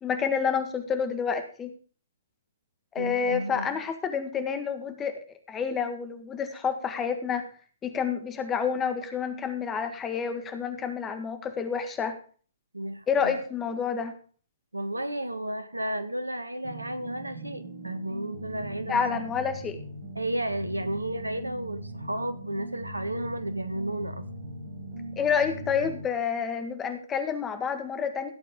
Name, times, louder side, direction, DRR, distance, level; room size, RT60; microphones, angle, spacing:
voice 1, 0.0-1.7 2.9-5.2 5.5-7.5 7.8-12.1 13.1-14.1 18.9-19.8 25.2-28.3, left 6 dB, 15° left, 7 dB, 1.7 m, -29 dB
voice 2, 3.0-3.7 12.7-13.4 14.7-19.0 20.1-24.2, right 1 dB, 85° right, 11 dB, 1.4 m, -33 dB
sound 1, 16.6-26.1, right 1 dB, 50° right, 4.8 m, -40 dB
16.5 x 8.3 x 3.8 m, 0.43 s
figure-of-eight pair, 125°, 0 cm